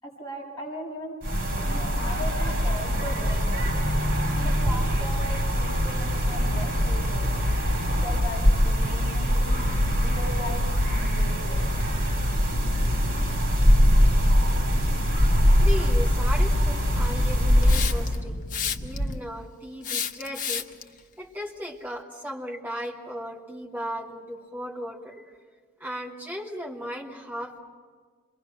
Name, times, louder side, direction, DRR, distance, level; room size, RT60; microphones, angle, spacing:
voice 1, 0.0-1.2 1.6-3.7 4.3-7.3 8.0-9.6 9.8-10.6 10.9-11.7, left 1 dB, 20° left, -5 dB, 7.6 m, -38 dB
sound 1, 1.2-18.2, equal, 45° right, 4.7 m, -23 dB
sound 2, 9.6-19.2, equal, 65° left, 1.9 m, -35 dB
voice 2, 15.6-18.4 18.8-20.6 21.2-25.2 25.8-27.6, equal, 10° right, -3 dB, 2.9 m, -36 dB
Hiss, 17.6-18.2 18.5-19.1 19.8-20.8, left 8 dB, 40° left, 1.0 m, -30 dB
27.0 x 22.5 x 6.1 m, 1.5 s
head